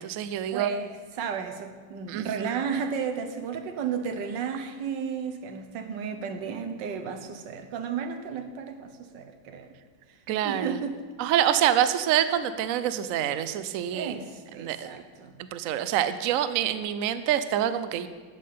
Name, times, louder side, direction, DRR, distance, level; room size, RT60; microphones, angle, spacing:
voice 1, 0.0-0.7 2.1-2.6 10.3-10.8 11.2-14.2 14.6-15.0 15.5-18.1, right 11 dB, 85° right, 12 dB, 0.7 m, -26 dB
voice 2, 0.5-9.7 10.4-11.0 11.5-11.8 13.9-15.4, right 6 dB, 65° right, 7 dB, 1.6 m, -33 dB
12.0 x 5.6 x 8.4 m, 1.5 s
omnidirectional pair, 2.2 m